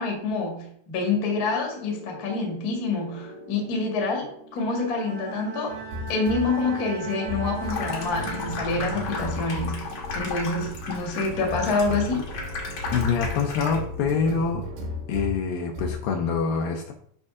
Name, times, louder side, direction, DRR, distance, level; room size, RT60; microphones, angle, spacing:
voice 1, 0.0-5.8 6.1-9.9 10.1-12.2, left 3 dB, 40° left, 1 dB, 1.3 m, -27 dB
sand cherry, 1.1-15.4 15.7-16.0, left 1 dB, 80° right, 3.9 m, -37 dB
Bowed string instrument, 4.6-9.2, right 6 dB, 65° right, 1.1 m, -39 dB
Water tap faucet / Sink (filling or washing), 7.6-14.0, left 3 dB, 60° left, 1.6 m, -34 dB
voice 2, 12.9-14.7 15.1-16.9, left 5 dB, 75° left, 2 dB, 2.3 m, -25 dB
9.0 x 5.5 x 3.7 m, 0.65 s
omnidirectional pair, 4.6 m